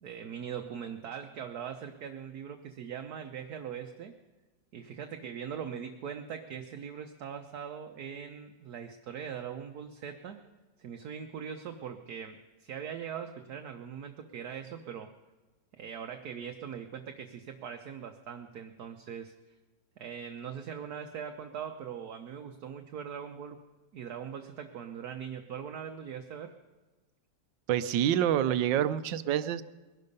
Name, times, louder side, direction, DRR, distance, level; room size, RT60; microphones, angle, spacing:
voice 1, 0.0-4.1 4.7-10.4 10.8-15.1 15.8-19.3 20.0-23.6 23.9-26.5, right 8 dB, 65° right, 5 dB, 1.3 m, -41 dB
voice 2, 27.7-29.6, right 10 dB, 85° right, 14 dB, 1.4 m, -27 dB
21.5 x 12.0 x 5.3 m, 1.2 s
omnidirectional pair, 1.9 m